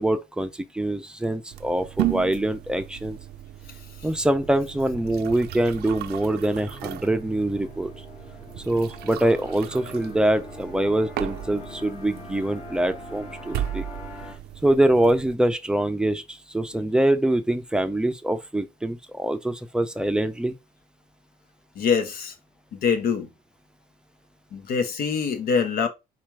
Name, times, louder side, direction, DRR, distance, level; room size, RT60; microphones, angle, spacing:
voice 1, 0.0-3.2 4.0-7.9 8.7-13.9 14.6-20.6, right 1 dB, 5° right, 0.6 m, -24 dB
sound 1, 1.5-15.3, right 14 dB, 70° right, 0.5 m, -35 dB
sound 2, 4.1-14.3, left 3 dB, 40° left, 2.3 m, -44 dB
voice 2, 21.7-22.3 22.7-23.3 24.5-25.9, left 6 dB, 65° left, 1.1 m, -24 dB
4.3 x 2.5 x 4.7 m
cardioid pair, 110°, 17 cm